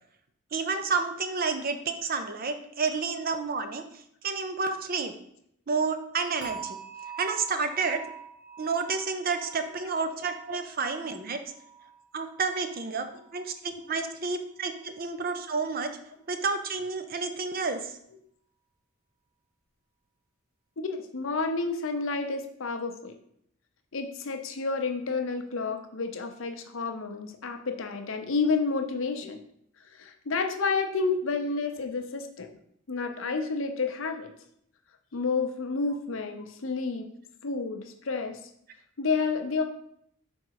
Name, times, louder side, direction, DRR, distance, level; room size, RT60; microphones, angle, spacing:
voice 1, 0.5-3.8 4.2-5.1 5.7-6.8 7.2-8.0 8.6-11.4 12.1-15.9 16.3-18.0, right 4 dB, 40° right, 8 dB, 0.5 m, -30 dB
sound 1, 6.4-13.5 13.8-14.2 14.7-14.8, right 7 dB, 75° right, 1.3 m, -45 dB
voice 2, 20.8-23.1 23.9-29.4 29.9-32.5 32.9-34.3 35.1-37.1 37.4-38.4 39.0-39.6, left 4 dB, 60° left, 6 dB, 0.6 m, -30 dB
5.3 x 3.8 x 4.6 m, 0.71 s
head